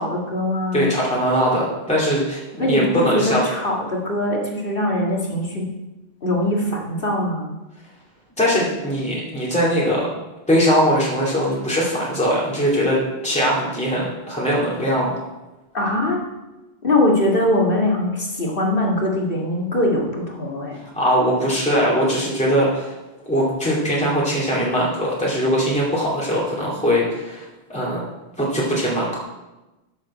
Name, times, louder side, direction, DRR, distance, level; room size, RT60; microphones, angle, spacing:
voice 1, 0.0-0.9 2.6-5.6 6.2-7.5 15.7-16.3 16.8-20.8, left 1 dB, 55° left, -1 dB, 2.2 m, -22 dB
voice 2, 0.7-3.4 8.4-10.1 10.5-15.2 20.9-22.9 23.3-28.0 28.4-29.2, equal, 5° left, -6 dB, 2.4 m, -21 dB
11.5 x 7.4 x 4.3 m, 1.0 s
omnidirectional pair, 1.1 m